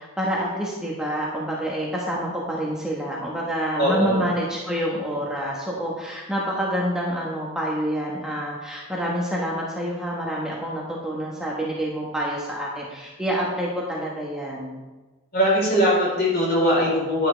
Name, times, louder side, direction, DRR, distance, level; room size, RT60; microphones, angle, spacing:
voice 1, 0.0-14.8, equal, 5° right, -4 dB, 1.3 m, -27 dB
voice 2, 3.8-4.2 15.3-17.3, equal, 45° left, -4 dB, 3.9 m, -20 dB
10.5 x 10.5 x 3.4 m, 1.2 s
head